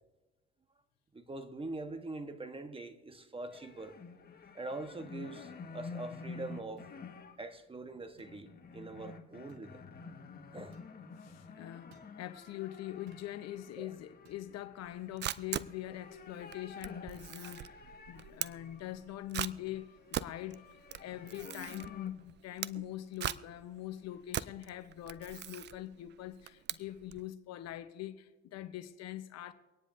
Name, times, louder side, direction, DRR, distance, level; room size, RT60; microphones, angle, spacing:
voice 1, 1.1-4.0 4.5-7.1 7.4-9.8 10.5-10.8 13.8-13.9, right 2 dB, 15° right, 1.2 m, -43 dB
sound 1, 3.5-7.4 7.9-19.3 19.8-22.1, left 4 dB, 30° left, 1.6 m, -50 dB
sound 2, 6.8-6.9 8.2-8.4 9.5-9.7 10.7-10.9 11.9-12.1 13.1-13.3 14.2-14.5 15.4-15.6, right 3 dB, 55° right, 1.9 m, -62 dB
voice 2, 11.2-20.7 21.0-29.5, left 13 dB, 50° left, 0.9 m, -43 dB
Camera, 14.8-27.3, right 12 dB, 35° right, 0.4 m, -41 dB
25.0 x 9.9 x 2.7 m
hypercardioid pair, 75°, 33 cm